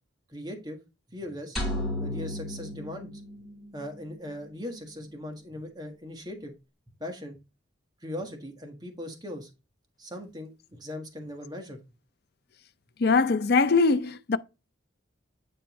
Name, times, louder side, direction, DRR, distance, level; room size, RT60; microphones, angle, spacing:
voice 1, 0.3-0.8 1.1-1.6 2.0-3.1 3.7-6.5 7.0-7.4 8.0-9.5 10.0-11.8, left 1 dB, 20° right, 1.5 m, -39 dB
sound 1, 1.6-3.8, left 1 dB, ahead, 3.0 m, -33 dB
voice 2, 13.0-14.4, left 4 dB, 50° left, 0.5 m, -22 dB
9.0 x 4.3 x 3.1 m
head